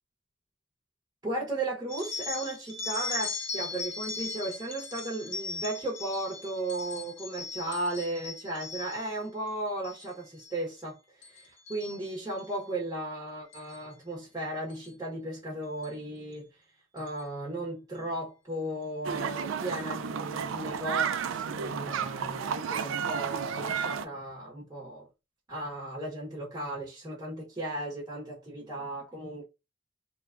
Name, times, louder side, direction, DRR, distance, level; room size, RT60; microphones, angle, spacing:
voice 1, 1.2-11.0 11.2-16.5 16.9-25.1 25.5-29.4, right 1 dB, 15° right, 0.8 m, -35 dB
sound 1, 1.9-9.2 9.7-10.1 10.4-10.8 11.2-12.6 13.5-13.8 14.7-14.9 15.8-15.9 16.3-16.4 17.0-17.2, left 4 dB, 80° left, 0.8 m, -39 dB
sound 2, 19.0-24.0, right 7 dB, 80° right, 0.3 m, -32 dB
3.2 x 2.2 x 2.3 m
head